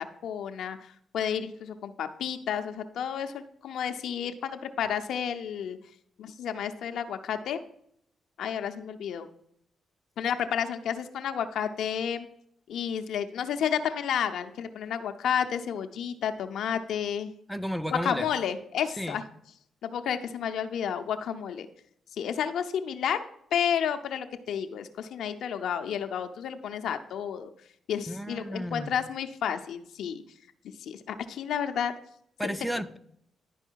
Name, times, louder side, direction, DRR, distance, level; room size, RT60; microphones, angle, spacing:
voice 1, 0.2-0.8 1.1-5.8 6.2-7.6 8.4-9.3 10.2-12.3 12.7-17.3 17.9-19.2 19.8-21.7 22.2-23.2 23.5-27.5 27.9-30.2 30.8-31.9 32.4-32.5, left 8 dB, 80° left, 8 dB, 0.6 m, -31 dB
voice 2, 17.5-18.3 19.0-19.2 28.1-28.9 32.4-33.0, equal, ahead, 11 dB, 0.6 m, -33 dB
10.5 x 4.8 x 4.6 m, 0.70 s
cardioid pair, 65°, 0 cm